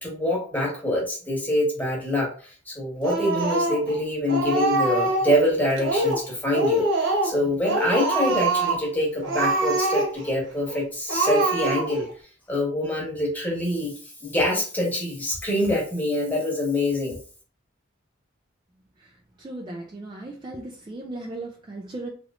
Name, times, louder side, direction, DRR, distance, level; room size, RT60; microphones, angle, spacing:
voice 1, 0.0-12.1 12.5-13.9 14.2-17.2, left 1 dB, 10° left, -3 dB, 1.1 m, -25 dB
Speech, 3.0-4.0 4.3-5.4 5.8-6.3 6.5-7.4 7.6-8.8 9.2-10.3 10.7-10.8 11.1-12.1, right 2 dB, 70° right, 1.0 m, -24 dB
voice 2, 19.0-22.1, right 2 dB, 25° right, -1 dB, 0.3 m, -37 dB
3.0 x 2.9 x 2.4 m, 0.40 s
head